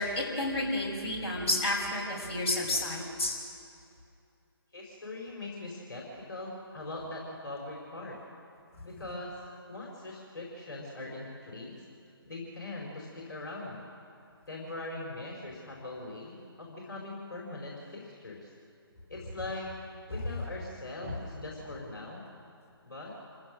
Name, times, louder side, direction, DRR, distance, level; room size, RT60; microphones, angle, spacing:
voice 1, 0.0-3.3 8.9-9.0, left 1 dB, 30° left, -5 dB, 5.8 m, -31 dB
voice 2, 4.7-8.2 8.8-9.4 9.7-11.8 12.2-13.8 14.5-18.5 19.1-19.7 20.1-22.2 22.8-23.1, left 2 dB, 50° left, -3 dB, 4.6 m, -41 dB
28.0 x 15.5 x 6.5 m, 2.5 s
figure-of-eight pair, 145°, 13 cm